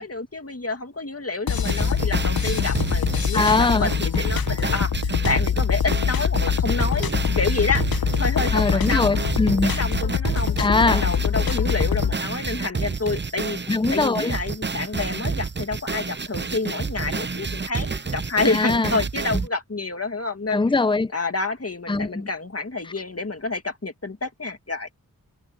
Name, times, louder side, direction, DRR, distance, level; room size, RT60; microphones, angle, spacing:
voice 1, 0.0-7.1 7.4-7.8 8.2-9.1 9.6-13.6 13.9-20.6 21.1-24.9, left 3 dB, 45° left, 2.1 m, -28 dB
sound 1, 1.5-12.2, left 7 dB, 90° left, 0.7 m, -24 dB
sound 2, 1.6-19.5, right 4 dB, 30° right, 0.6 m, -29 dB
voice 2, 3.3-3.9 8.5-9.7 10.6-11.0 13.7-14.4 18.4-19.0 20.5-21.1 21.9-22.3, left 3 dB, 15° left, 0.6 m, -21 dB
wide cardioid pair, 55°, 35 cm